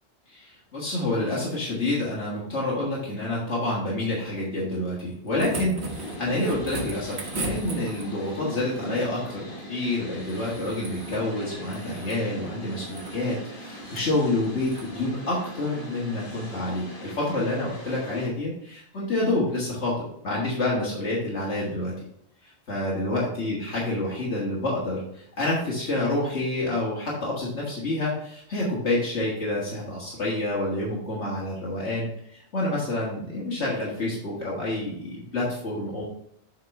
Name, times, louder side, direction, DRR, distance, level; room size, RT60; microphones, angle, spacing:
voice 1, 0.3-21.9 22.4-36.0, left 2 dB, 80° left, -5 dB, 1.9 m, -28 dB
sound 1, 5.0-8.3 10.2-11.3 11.6-12.2 12.7-13.2 13.8-14.1 14.6-14.9 16.3-16.4, right 2 dB, 75° right, 1.4 m, -36 dB
sound 2, 5.9-18.3, equal, 50° left, 1.8 m, -40 dB
7.4 x 4.8 x 3.6 m, 0.73 s
omnidirectional pair, 1.1 m